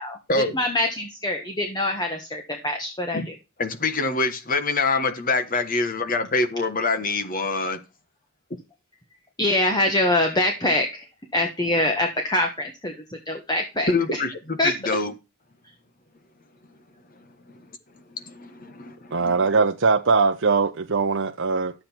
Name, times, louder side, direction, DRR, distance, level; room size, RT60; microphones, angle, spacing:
voice 1, 0.0-3.3 9.4-11.0 11.3-14.2 14.6-14.7, left 1 dB, 20° left, 1.3 m, -24 dB
voice 2, 3.6-7.8 13.9-15.1 18.1-19.2, left 3 dB, 40° left, 1.4 m, -25 dB
voice 3, 19.1-21.7, right 4 dB, 60° right, 0.8 m, -21 dB
12.0 x 7.7 x 4.4 m
head